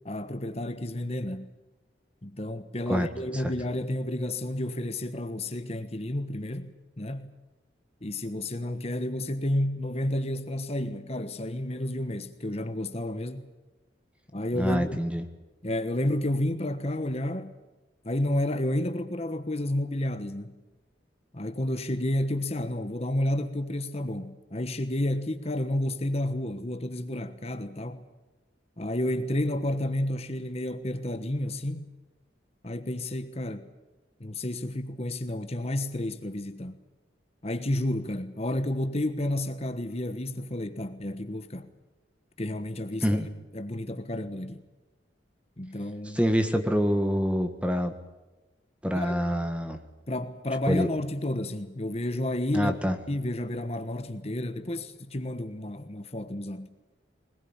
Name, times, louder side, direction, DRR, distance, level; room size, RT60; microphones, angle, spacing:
voice 1, 0.0-1.5 2.2-7.3 8.0-13.5 14.3-15.0 15.6-17.5 18.0-20.5 21.3-28.1 28.8-31.9 32.6-33.7 34.2-36.8 37.4-41.7 42.4-43.2 43.5-44.6 45.6-46.2 48.9-49.2 50.1-52.7 53.1-56.7, left 1 dB, 35° left, 1.3 m, -31 dB
voice 2, 14.6-15.2 43.0-43.3 46.1-47.9 48.8-49.8 50.7-50.9 52.5-53.0, equal, 5° right, 1.6 m, -26 dB
22.0 x 20.0 x 8.9 m
head